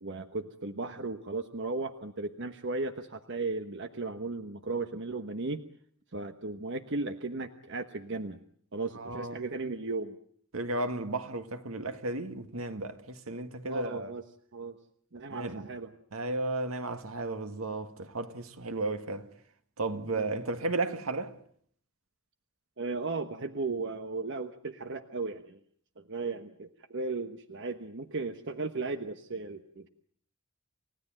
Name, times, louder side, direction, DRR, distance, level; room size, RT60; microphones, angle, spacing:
voice 1, 0.0-5.6 6.1-8.4 8.7-10.2 13.7-14.2 14.5-14.8 15.1-15.9 20.1-20.3 22.8-25.6 26.0-29.9, right 3 dB, 60° right, 1.2 m, -36 dB
voice 2, 9.0-9.4 10.5-14.1 15.3-15.7 16.1-19.3 19.8-21.4, right 2 dB, 85° right, 1.9 m, -34 dB
29.5 x 16.5 x 9.0 m
head